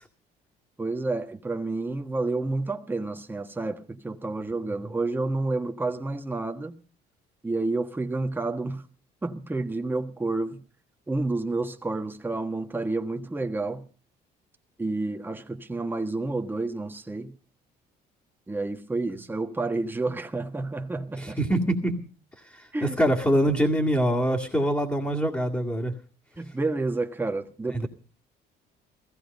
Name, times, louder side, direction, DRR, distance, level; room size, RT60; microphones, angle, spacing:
voice 1, 0.8-6.7 7.4-8.8 9.2-10.6 11.1-13.8 14.8-17.3 18.5-21.4 22.7-23.0 26.4-27.9, right 3 dB, 10° right, 1.4 m, -30 dB
voice 2, 21.2-22.1 22.4-25.9 27.7-27.9, equal, 15° left, 2.1 m, -25 dB
16.0 x 15.5 x 5.3 m
cardioid pair, 110°, 17 cm